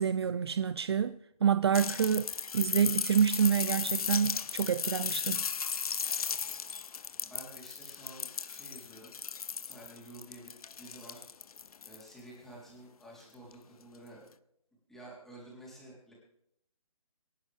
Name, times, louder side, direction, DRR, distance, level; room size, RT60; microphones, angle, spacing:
voice 1, 0.0-5.4, right 7 dB, 45° right, 0.4 m, -28 dB
sound 1, 1.7-12.1 13.5-13.6, left 6 dB, 70° left, 0.6 m, -36 dB
voice 2, 7.2-9.2 9.7-10.5 10.8-11.2 11.8-14.3 14.9-16.1, right 1 dB, ahead, 3.7 m, -51 dB
26.5 x 11.5 x 3.5 m
hypercardioid pair, 160°, 19 cm